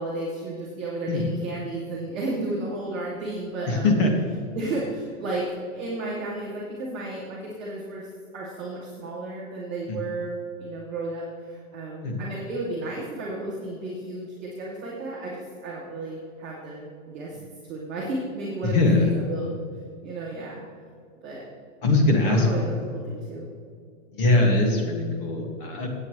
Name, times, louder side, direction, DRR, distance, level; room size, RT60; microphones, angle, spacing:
voice 1, 0.0-3.9 4.5-5.4 5.7-8.1 8.3-17.4 17.7-19.5 20.0-20.6 21.2-21.4 22.2-23.5 24.3-24.8, right 2 dB, 5° right, -11 dB, 0.5 m, -33 dB
voice 2, 3.7-4.1 9.9-10.0 12.0-12.3 18.6-19.1 21.8-22.5 24.1-25.9, left 2 dB, 45° left, 2 dB, 2.0 m, -21 dB
16.5 x 8.5 x 3.2 m, 2.2 s
supercardioid pair, 180°, 38 cm